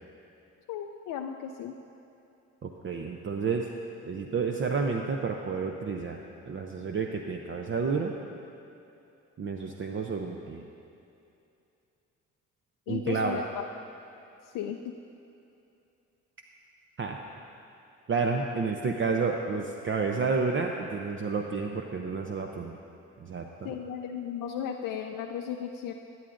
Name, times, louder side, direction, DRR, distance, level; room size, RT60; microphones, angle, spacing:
voice 1, 0.7-1.7 12.9-13.6 14.5-14.9 23.6-25.9, left 8 dB, 75° left, 3 dB, 0.5 m, -35 dB
voice 2, 2.6-3.7 4.1-6.2 6.5-8.1 9.4-10.6 12.9-13.4 17.0-17.2 18.1-22.7 23.2-23.7, right 4 dB, 40° right, 2 dB, 0.6 m, -30 dB
12.5 x 9.5 x 2.6 m, 2.8 s
supercardioid pair, 55°, 33 cm